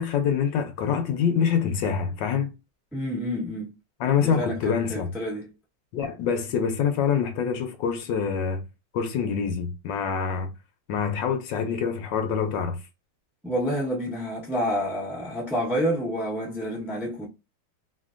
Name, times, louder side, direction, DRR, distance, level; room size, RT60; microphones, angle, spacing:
voice 1, 0.0-2.5 4.0-5.1 5.9-8.6 8.9-10.5 10.9-12.8, left 7 dB, 75° left, 1.2 m, -25 dB
voice 2, 2.9-3.7 4.2-5.5 13.4-17.3, equal, ahead, 0.4 m, -28 dB
3.2 x 2.5 x 2.5 m
omnidirectional pair, 2.1 m